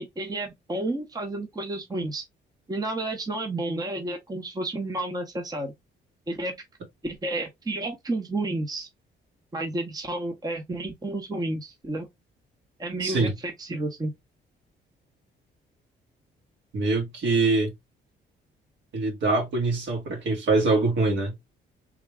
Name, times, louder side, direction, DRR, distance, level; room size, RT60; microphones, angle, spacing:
voice 1, 0.0-2.2 2.7-5.7 6.3-6.5 7.0-8.9 9.5-12.1 12.8-14.1, right 2 dB, 20° right, 0.8 m, -31 dB
voice 2, 13.0-13.3 16.7-17.7 18.9-21.3, right 3 dB, 70° right, 2.0 m, -24 dB
3.5 x 2.2 x 3.4 m
cardioid pair, 90°, 20 cm